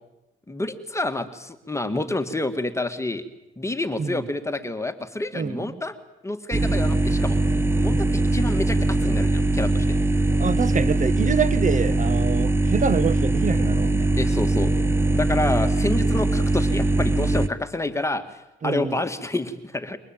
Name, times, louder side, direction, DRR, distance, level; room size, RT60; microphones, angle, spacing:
voice 1, 0.5-3.2 3.6-6.0 6.2-7.4 7.8-10.0 14.2-14.7 15.1-20.0, left 2 dB, 15° left, 2.1 m, -28 dB
voice 2, 5.3-5.8 10.4-14.1 18.6-19.0, right 6 dB, 40° right, 1.7 m, -26 dB
sound 1, 6.5-17.5, right 2 dB, 10° right, 1.1 m, -21 dB
28.0 x 23.5 x 9.1 m
cardioid pair, 90°, 20 cm